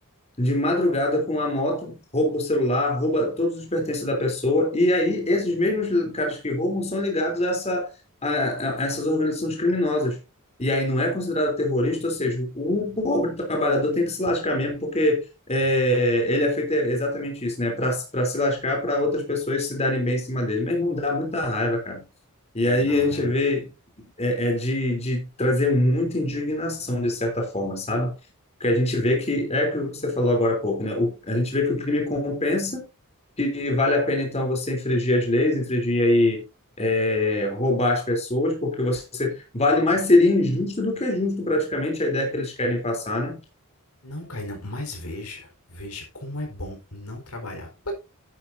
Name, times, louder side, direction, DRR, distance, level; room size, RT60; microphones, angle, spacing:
voice 1, 0.4-7.9 8.2-10.2 10.6-22.0 22.5-23.7 24.2-28.1 28.6-32.9 33.4-36.4 36.8-43.4, left 1 dB, 30° left, 3.4 m, -24 dB
voice 2, 22.6-23.3 44.0-48.0, left 1 dB, 80° left, 4.4 m, -36 dB
11.5 x 10.5 x 2.7 m
head